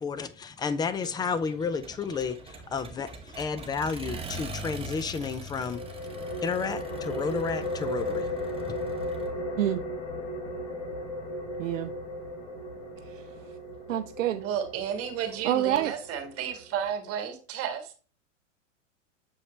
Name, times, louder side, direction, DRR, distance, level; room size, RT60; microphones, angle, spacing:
voice 1, 0.0-2.4 2.7-3.1 3.4-5.8 6.4-8.2, left 5 dB, 10° left, 0.3 m, -31 dB
Accelerating revving vroom, 1.0-9.3, right 2 dB, 15° right, 1.3 m, -43 dB
sound 1, 5.5-16.9, left 1 dB, 50° left, 3.7 m, -36 dB
voice 2, 11.6-11.9 13.1-13.3 13.9-14.4 15.4-15.9, right 12 dB, 85° right, 0.5 m, -27 dB
voice 3, 14.4-18.0, right 8 dB, 40° right, 1.8 m, -32 dB
7.1 x 4.9 x 3.2 m
hypercardioid pair, 110°, 38 cm